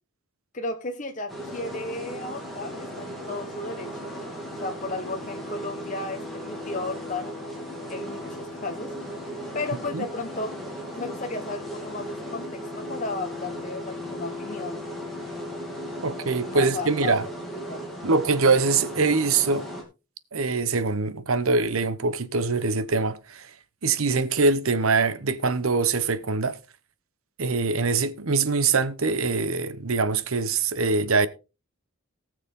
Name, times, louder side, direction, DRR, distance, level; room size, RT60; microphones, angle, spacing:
voice 1, 0.5-4.1 4.5-7.3 7.9-8.9 9.5-10.5 10.9-14.8 16.4-17.1 17.4-17.8, left 2 dB, 35° left, 1.2 m, -34 dB
sound 1, 1.3-19.8, equal, ahead, 3.0 m, -36 dB
voice 2, 16.0-17.3 18.0-19.7 20.3-23.5 23.8-26.6 27.4-31.3, right 4 dB, 80° right, 1.0 m, -23 dB
18.5 x 6.5 x 3.7 m
head